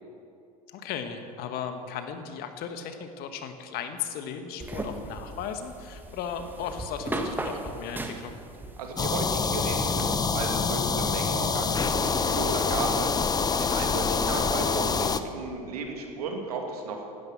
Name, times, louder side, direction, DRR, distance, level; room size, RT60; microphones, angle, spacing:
voice 1, 0.7-8.4, left 7 dB, 50° left, 7 dB, 1.7 m, -36 dB
sound 1, 4.6-10.2, right 1 dB, 10° right, 1.7 m, -37 dB
voice 2, 8.8-17.0, right 3 dB, 75° right, 2 dB, 2.6 m, -34 dB
sound 2, 9.0-15.2, left 5 dB, 20° left, 0.8 m, -26 dB
16.5 x 12.5 x 6.2 m, 2.5 s
hypercardioid pair, 85°, 20 cm